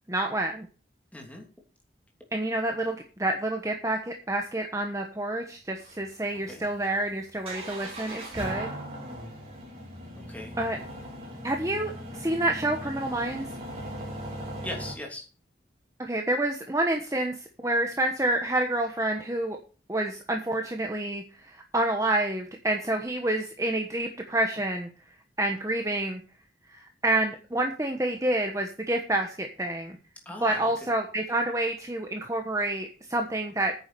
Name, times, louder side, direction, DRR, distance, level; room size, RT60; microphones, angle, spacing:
voice 1, 0.1-0.7 2.3-8.7 10.6-10.8 11.4-13.5 16.0-19.6 19.9-24.9 25.4-26.2 26.7-30.0 30.4-33.7, right 1 dB, 15° right, 3 dB, 1.1 m, -28 dB
voice 2, 1.1-1.5 6.5-6.6 10.1-10.5 14.6-15.2 30.2-30.7, left 1 dB, 10° left, 1 dB, 2.9 m, -39 dB
sound 1, 5.8-14.9, right 1 dB, 35° right, 4.4 m, -39 dB
9.7 x 7.2 x 6.8 m, 0.36 s
head